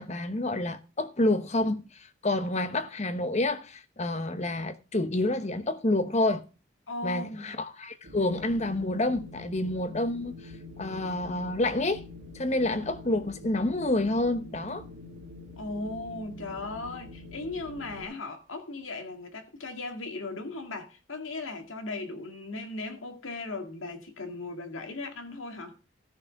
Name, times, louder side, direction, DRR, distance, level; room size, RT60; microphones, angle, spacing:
voice 1, 0.0-6.4 7.0-10.5 10.8-12.0 12.3-14.8, left 2 dB, 35° left, 1.0 m, -28 dB
voice 2, 6.9-7.5 15.6-25.8, left 2 dB, 85° left, 2.0 m, -37 dB
Wind, 8.0-18.0, left 2 dB, 55° right, 1.5 m, -45 dB
14.0 x 6.4 x 5.2 m
head